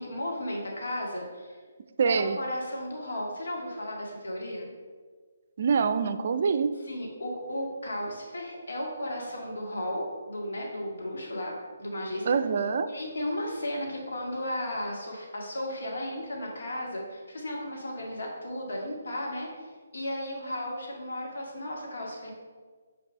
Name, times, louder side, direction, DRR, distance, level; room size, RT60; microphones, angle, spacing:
voice 1, 0.0-1.6 2.1-4.7 6.9-12.3 12.9-22.3, left 1 dB, 75° left, -1 dB, 2.1 m, -34 dB
voice 2, 2.0-2.4 5.6-6.7 12.3-12.9, right 5 dB, 50° right, 10 dB, 0.4 m, -25 dB
6.0 x 4.7 x 5.4 m, 1.5 s
hypercardioid pair, 155°, 0 cm